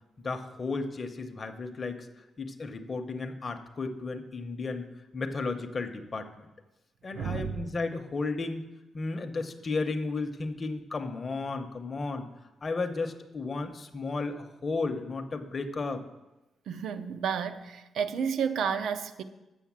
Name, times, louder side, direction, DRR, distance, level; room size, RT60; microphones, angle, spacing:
voice 1, 0.2-4.9 5.1-6.5 7.0-8.7 8.9-12.3 12.6-16.0, left 3 dB, 30° left, 0.7 m, -34 dB
voice 2, 7.1-7.6 16.7-19.2, right 7 dB, 75° right, 0.5 m, -31 dB
7.1 x 6.5 x 7.3 m
wide cardioid pair, 145°, 0 cm